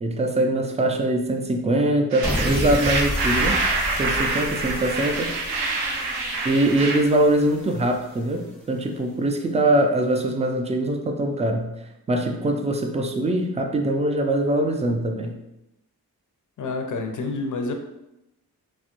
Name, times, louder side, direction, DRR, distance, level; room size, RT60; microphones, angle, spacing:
voice 1, 0.0-3.6 4.0-5.3 6.4-11.7 12.1-15.4, right 1 dB, 20° right, 3 dB, 0.4 m, -22 dB
sound 1, 2.1-7.0, right 3 dB, 85° right, 0.5 m, -26 dB
sound 2, 2.2-8.6, left 1 dB, 5° left, 0.8 m, -31 dB
voice 2, 16.6-17.7, left 3 dB, 55° left, 5 dB, 0.5 m, -28 dB
2.3 x 2.1 x 2.9 m, 0.87 s
cardioid pair, 50°, 38 cm